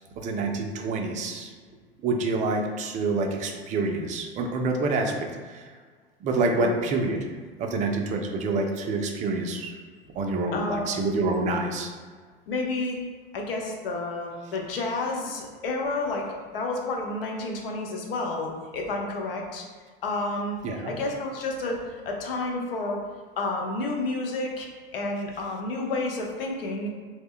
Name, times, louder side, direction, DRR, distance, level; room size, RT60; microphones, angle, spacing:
voice 1, 0.2-1.5 2.0-5.7 6.2-7.3 7.6-9.7 10.1-11.9 20.6-20.9, right 3 dB, 25° right, 3 dB, 0.3 m, -27 dB
voice 2, 10.5-11.3 12.5-13.0 13.3-16.3 16.5-19.7 20.0-20.6 20.8-23.0 23.4-24.7 24.9-26.9, left 2 dB, 75° left, 0 dB, 0.6 m, -30 dB
2.1 x 2.1 x 3.5 m, 1.5 s
hypercardioid pair, 80°, 29 cm